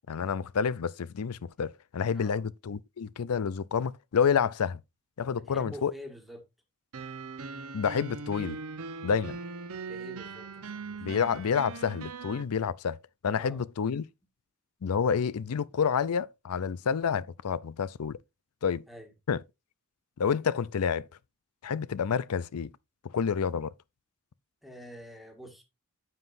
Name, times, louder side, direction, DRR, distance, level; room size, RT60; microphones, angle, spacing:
voice 1, 0.1-4.8 5.2-5.9 7.7-8.6 9.0-9.4 11.0-13.0 13.2-14.0 14.8-18.2 18.6-18.8 19.3-19.4 20.2-21.1 21.6-22.7 23.0-23.7, left 6 dB, 85° left, 0.5 m, -29 dB
voice 2, 2.1-2.4 5.4-6.4 9.9-11.2 13.3-13.6 18.9-19.1 24.6-25.6, equal, ahead, 1.8 m, -47 dB
sound 1, 6.9-12.4, right 4 dB, 75° right, 0.9 m, -40 dB
9.2 x 7.8 x 2.6 m
head